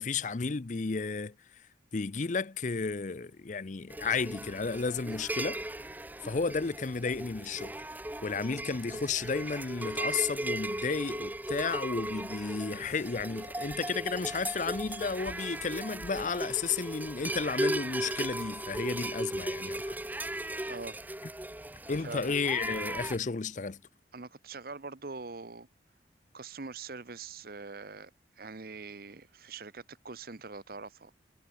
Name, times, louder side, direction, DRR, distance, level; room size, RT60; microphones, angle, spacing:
voice 1, 0.0-1.7 1.9-5.6 6.2-7.7 8.2-20.0 21.9-23.8, left 4 dB, 40° left, 0.6 m, -33 dB
sound 1, 3.9-23.2, right 1 dB, 10° right, 1.1 m, -37 dB
voice 2, 20.7-21.0 22.0-22.3 24.1-25.7 26.3-28.1 28.4-31.2, right 4 dB, 55° right, 0.9 m, -43 dB
head